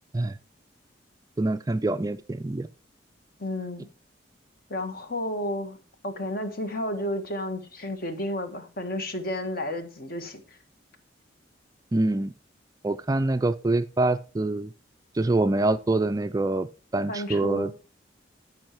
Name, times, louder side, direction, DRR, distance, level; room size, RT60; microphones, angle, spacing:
voice 1, 1.4-2.7 11.9-12.3 12.8-14.7 15.1-17.7, right 2 dB, 20° right, 12 dB, 0.4 m, -25 dB
voice 2, 3.4-3.9 4.7-5.8 6.0-10.6 17.1-17.7, left 1 dB, 50° left, 7 dB, 1.5 m, -32 dB
13.5 x 5.5 x 4.5 m, 0.34 s
head